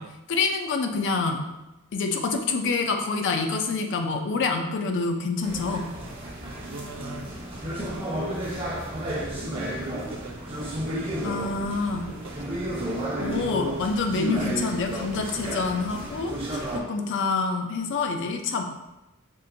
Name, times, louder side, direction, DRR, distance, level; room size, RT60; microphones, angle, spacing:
voice 1, 0.3-1.5 1.9-5.8 11.2-12.1 13.2-16.3 16.7-18.6, left 4 dB, 55° left, 4 dB, 0.5 m, -27 dB
sound 1, 5.4-16.8, right 1 dB, 25° right, 0.8 m, -32 dB
voice 2, 6.4-7.3 7.7-8.4 9.0-11.5 12.0-12.6, right 3 dB, 85° right, 5 dB, 0.4 m, -42 dB
5.3 x 2.5 x 2.6 m, 1.0 s
head